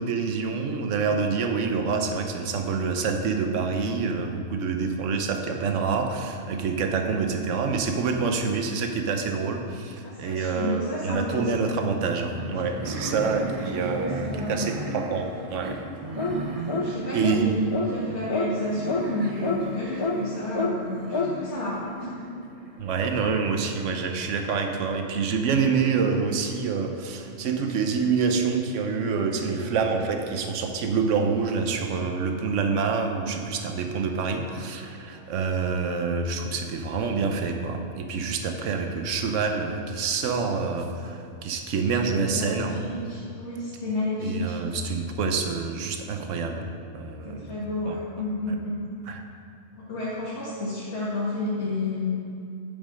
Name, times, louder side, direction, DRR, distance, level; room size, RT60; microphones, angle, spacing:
voice 1, 0.0-15.8 17.1-17.6 22.8-42.8 44.2-46.6 46.9-47.5 47.9-48.0 49.1-49.2, right 5 dB, 75° right, 5 dB, 1.1 m, -27 dB
voice 2, 10.0-11.4 13.2-13.6 13.9-14.7 16.7-17.6 17.9-22.4 42.3-44.6 47.2-48.7 49.9-52.1, left 2 dB, 60° left, -9 dB, 1.8 m, -31 dB
sound 1, 12.3-24.7, right 2 dB, 40° right, 0.5 m, -36 dB
sound 2, 16.2-16.4 16.7-16.9 17.2-17.4 17.7-17.9 18.3-18.5 18.9-19.0 19.4-19.6 20.0-20.2 20.5-20.7 21.1-21.3, left 4 dB, 45° left, 0.3 m, -26 dB
8.8 x 5.4 x 5.1 m, 2.5 s
omnidirectional pair, 1.3 m